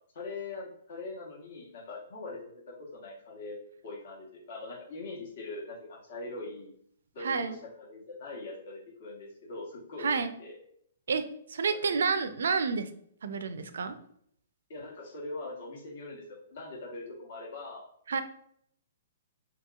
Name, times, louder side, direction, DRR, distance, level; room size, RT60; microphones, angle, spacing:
voice 1, 0.1-3.6 3.8-6.7 7.1-10.1 10.4-10.6 11.7-12.0 14.7-17.8, left 2 dB, 55° left, -3 dB, 1.0 m, -42 dB
voice 2, 7.2-7.6 10.0-10.3 11.1-12.9 13.2-14.0 18.1-18.2, right 5 dB, 80° right, 10 dB, 0.4 m, -29 dB
2.9 x 2.8 x 2.3 m, 0.66 s
hypercardioid pair, 155°, 0 cm